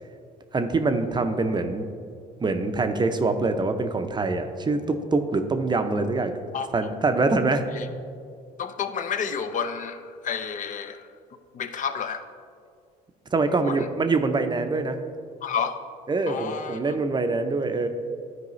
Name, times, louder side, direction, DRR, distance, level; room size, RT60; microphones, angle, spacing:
voice 1, 0.5-1.9 2.4-6.3 6.7-7.7 13.3-15.0 16.1-17.9, right 3 dB, 25° right, 8 dB, 0.6 m, -24 dB
voice 2, 8.6-11.1 11.5-12.3 13.6-13.8 15.4-15.8 16.3-16.9, left 6 dB, 45° left, 9 dB, 0.5 m, -30 dB
11.0 x 4.7 x 3.1 m, 2.2 s
supercardioid pair, 80°, 18 cm